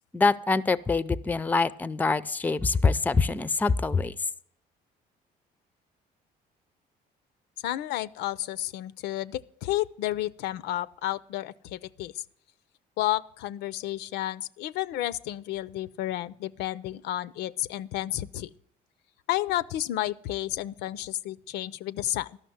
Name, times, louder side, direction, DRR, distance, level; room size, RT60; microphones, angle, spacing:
voice 1, 0.1-4.2, left 4 dB, 10° left, 18 dB, 0.4 m, -25 dB
voice 2, 7.6-12.2 13.0-18.5 19.3-22.4, left 14 dB, 80° left, 19 dB, 0.5 m, -31 dB
12.5 x 6.0 x 7.8 m, 0.65 s
cardioid pair, 110°, 17 cm